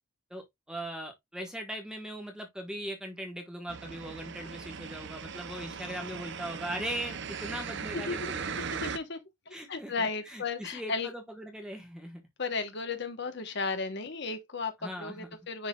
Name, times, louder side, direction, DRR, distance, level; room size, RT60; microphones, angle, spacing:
voice 1, 0.3-8.4 9.5-12.2 14.8-15.3, equal, 5° right, 1.3 m, -40 dB
sound 1, 3.7-9.0, right 6 dB, 50° right, 0.6 m, -38 dB
voice 2, 7.9-8.3 8.7-11.1 12.4-15.7, left 4 dB, 50° left, 1.0 m, -35 dB
10.0 x 4.0 x 2.3 m
head